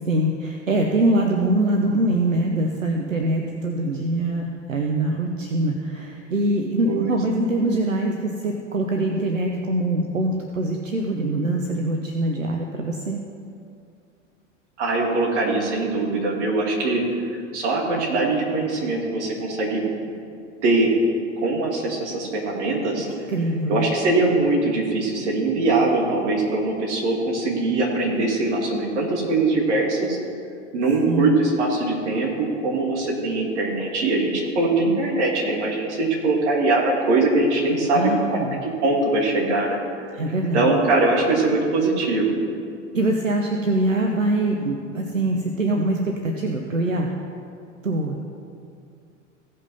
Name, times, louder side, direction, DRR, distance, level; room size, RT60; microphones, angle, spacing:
voice 1, 0.1-13.2 23.3-23.9 31.1-31.4 37.9-38.6 40.1-40.7 42.9-47.1 47.8-48.2, right 1 dB, 90° right, 1 dB, 0.8 m, -23 dB
voice 2, 14.8-17.0 17.3-19.8 20.6-20.9 21.4-23.1 23.7-30.2 30.7-38.4 38.8-39.8 40.5-42.3, right 2 dB, 65° right, -1 dB, 2.5 m, -22 dB
16.0 x 5.4 x 5.5 m, 2.4 s
figure-of-eight pair, 85°, 38 cm